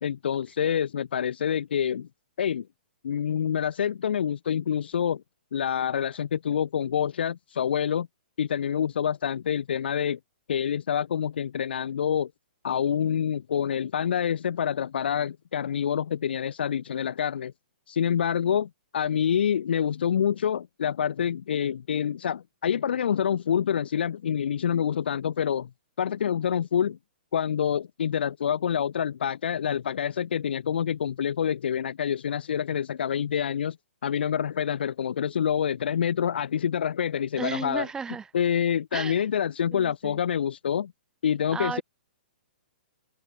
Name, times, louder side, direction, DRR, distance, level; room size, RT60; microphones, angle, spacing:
voice 1, 0.0-2.1 2.4-2.7 3.0-5.2 5.5-8.1 8.4-10.2 10.5-12.3 12.6-17.5 17.9-25.7 26.0-27.0 27.3-33.8 34.0-37.9 38.3-40.9 41.2-41.8, left 8 dB, 70° left, 1.5 m, -27 dB
voice 2, 37.4-38.3 38.9-39.2 39.7-40.2 41.5-41.8, right 5 dB, 10° right, 3.2 m, -34 dB
open air
hypercardioid pair, 135°, 6 cm